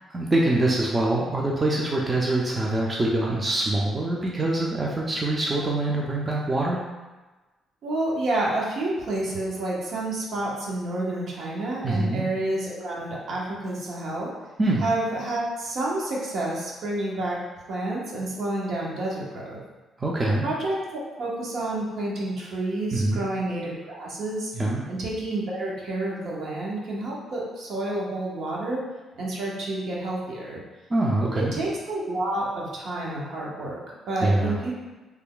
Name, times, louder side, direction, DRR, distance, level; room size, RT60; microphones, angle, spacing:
voice 1, 0.1-6.8 11.8-12.2 14.6-14.8 20.0-20.5 22.9-23.2 24.5-24.8 30.9-31.5 34.2-34.6, right 2 dB, 25° right, -3 dB, 0.5 m, -24 dB
voice 2, 7.8-14.3 14.8-17.4 17.7-19.6 20.4-20.8 21.2-24.5 24.9-28.8 29.2-30.6 31.3-34.8, right 2 dB, 70° right, -4 dB, 0.9 m, -29 dB
3.3 x 2.2 x 3.7 m, 1.2 s
cardioid pair, 90°, 0 cm